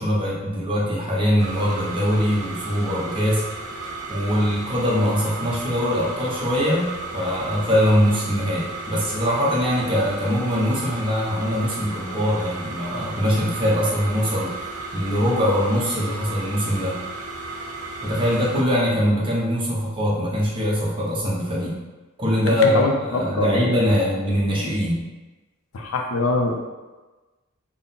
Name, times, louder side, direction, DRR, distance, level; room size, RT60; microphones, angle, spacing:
voice 1, 0.0-3.4 4.1-14.5 14.9-17.0 18.0-21.8 22.2-25.0, equal, 25° right, -5 dB, 0.8 m, -22 dB
sound 1, 1.4-18.6, right 3 dB, 85° right, 0.4 m, -34 dB
voice 2, 22.4-23.7 25.7-26.6, left 2 dB, 70° left, 2 dB, 0.5 m, -24 dB
3.7 x 2.1 x 3.9 m, 1.2 s
head